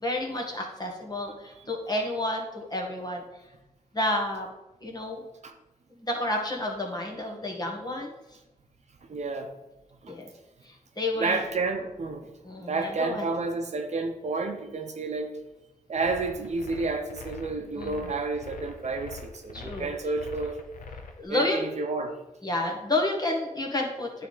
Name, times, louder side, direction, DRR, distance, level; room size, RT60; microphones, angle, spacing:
voice 1, 0.0-3.2 3.9-4.5 4.8-5.2 6.0-8.1 10.1-10.2 10.6-11.4 12.4-13.3 17.7-18.1 19.5-19.9 21.2-21.6 22.4-24.3, left 1 dB, 30° left, 0 dB, 1.7 m, -30 dB
voice 2, 9.0-9.5 10.0-10.2 11.2-12.3 12.6-15.3 15.9-20.6 21.3-22.2, right 3 dB, 55° right, 5 dB, 0.8 m, -30 dB
sound 1, 16.0-21.2, left 4 dB, 85° left, 0.7 m, -43 dB
9.4 x 3.5 x 4.0 m, 1.0 s
cardioid pair, 60°, 13 cm